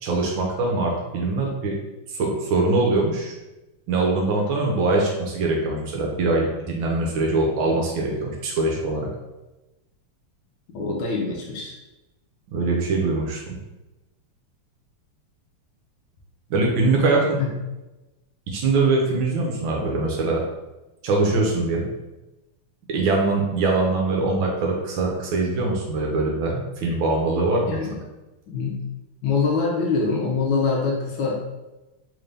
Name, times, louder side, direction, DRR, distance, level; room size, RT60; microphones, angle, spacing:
voice 1, 0.0-1.7 2.1-3.3 3.9-9.1 12.5-13.6 16.5-17.4 18.5-20.4 21.0-21.9 22.9-27.8, right 3 dB, 70° right, -1 dB, 1.3 m, -22 dB
voice 2, 10.7-11.7 17.4-17.5 27.7-28.0 28.5-28.8 29.2-31.4, left 4 dB, 75° left, -2 dB, 1.3 m, -24 dB
3.8 x 2.6 x 3.3 m, 1.0 s
omnidirectional pair, 2.4 m